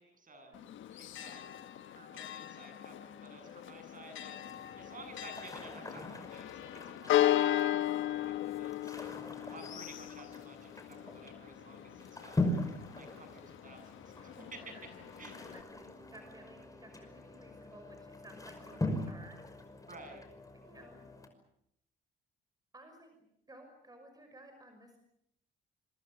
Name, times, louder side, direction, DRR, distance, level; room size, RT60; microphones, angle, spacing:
voice 1, 0.0-0.5 0.9-1.4 1.8-9.2 9.5-12.4 12.9-14.8 15.2-15.4 19.9-20.2, right 2 dB, 40° right, 6 dB, 7.9 m, -53 dB
Church bell, 0.5-15.6, left 13 dB, 80° left, 1.4 m, -37 dB
sound 1, 4.4-21.3, left 1 dB, 15° left, 5.5 m, -42 dB
voice 2, 14.1-14.8 15.5-19.4 19.7-19.9 20.6-21.1 22.7-23.1 23.5-25.0, right 1 dB, 20° right, 5 dB, 5.7 m, -56 dB
26.5 x 24.5 x 6.9 m, 0.74 s
cardioid pair, 90°, 20 cm